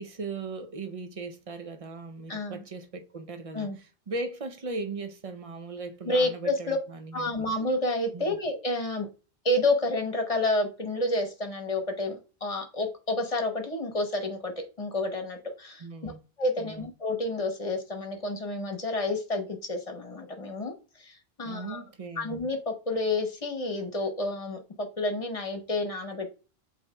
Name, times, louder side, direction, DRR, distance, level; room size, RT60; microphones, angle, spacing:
voice 1, 0.0-7.5 8.1-8.4 15.8-16.2 16.6-16.9 21.4-22.3, right 3 dB, 40° right, 0.6 m, -38 dB
voice 2, 2.3-2.6 3.5-3.8 6.0-6.8 7.1-9.1 9.4-14.5 14.8-16.1 16.4-21.8 22.2-26.3, left 2 dB, 35° left, 1.0 m, -30 dB
8.1 x 2.8 x 2.2 m
omnidirectional pair, 1.0 m